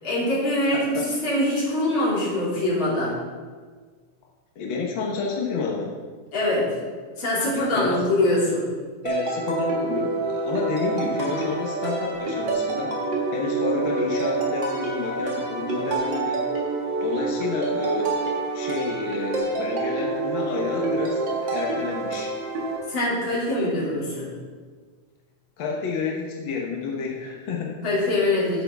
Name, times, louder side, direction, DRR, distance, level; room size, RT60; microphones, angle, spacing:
voice 1, 0.0-3.1 6.3-6.7 7.2-8.6 22.9-24.3 27.8-28.6, left 1 dB, 40° left, -6 dB, 3.1 m, -23 dB
voice 2, 0.7-1.0 4.5-5.9 7.5-8.0 9.0-16.4 17.0-18.3 18.5-22.3 25.6-27.7, left 4 dB, 70° left, -2 dB, 1.1 m, -30 dB
sound 1, 9.1-22.8, right 3 dB, 45° right, 1.7 m, -27 dB
10.5 x 8.1 x 3.5 m, 1.5 s
omnidirectional pair, 3.8 m